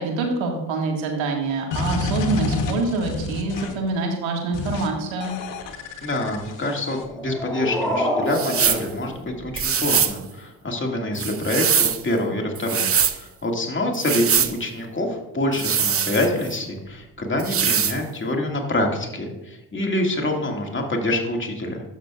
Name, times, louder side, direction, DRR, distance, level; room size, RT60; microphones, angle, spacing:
voice 1, 0.0-5.4, right 3 dB, 75° right, 1 dB, 1.9 m, -25 dB
sound 1, 1.7-3.9 4.5-4.9 5.2-7.0, left 4 dB, 65° left, 1.3 m, -29 dB
voice 2, 6.0-21.8, left 1 dB, 25° left, 1 dB, 2.2 m, -26 dB
sound 2, 7.0-10.0, equal, ahead, 2.3 m, -28 dB
sound 3, 8.3-8.9 9.6-10.2 11.2-12.0 12.6-13.2 13.9-14.5 15.5-16.6 17.4-18.0, right 8 dB, 30° right, 0.7 m, -22 dB
12.0 x 6.4 x 2.5 m, 0.97 s
supercardioid pair, 55°, 46 cm